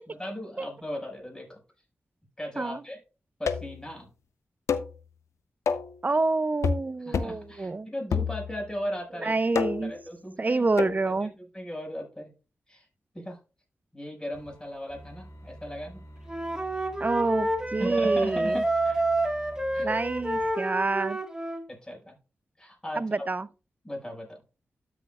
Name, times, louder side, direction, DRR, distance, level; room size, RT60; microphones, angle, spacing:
voice 1, 0.1-1.6 2.4-3.0 3.4-4.1 7.0-9.4 9.8-10.7 11.0-12.3 12.7-12.9 13.1-13.4 13.9-16.0 17.8-19.1 19.7-19.9 21.7-22.2 22.6-23.3 23.8-24.4, equal, 15° left, 5.2 m, -37 dB
sound 1, 3.5-3.8 4.7-5.0 5.7-6.0 6.6-6.9 7.1-7.4 8.1-8.7 9.5-10.0 10.8-11.0, left 6 dB, 85° left, 0.6 m, -28 dB
voice 2, 6.0-7.9 9.2-9.9 10.4-11.3 17.0-18.6 19.8-21.2 22.9-23.5, right 3 dB, 35° right, 0.4 m, -27 dB
sound 2, 14.3-20.5, equal, 70° left, 3.7 m, -47 dB
Wind instrument woodwind instrument, 16.3-21.6, right 2 dB, 15° right, 1.5 m, -28 dB
13.0 x 6.3 x 2.3 m
cardioid pair, 55°, 5 cm